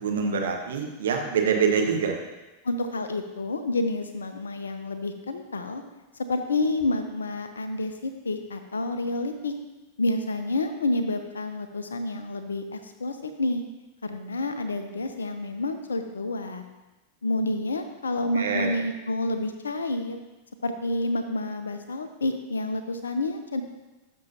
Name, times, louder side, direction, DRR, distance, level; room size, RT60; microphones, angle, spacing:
voice 1, 0.0-2.2 18.3-18.7, right 6 dB, 60° right, 2 dB, 1.4 m, -25 dB
voice 2, 2.6-5.8 6.3-9.5 10.0-13.6 14.0-16.6 17.2-20.2 20.6-23.6, left 2 dB, 70° left, 8 dB, 0.8 m, -29 dB
12.5 x 6.4 x 2.8 m, 1.1 s
figure-of-eight pair, 90°, 0 cm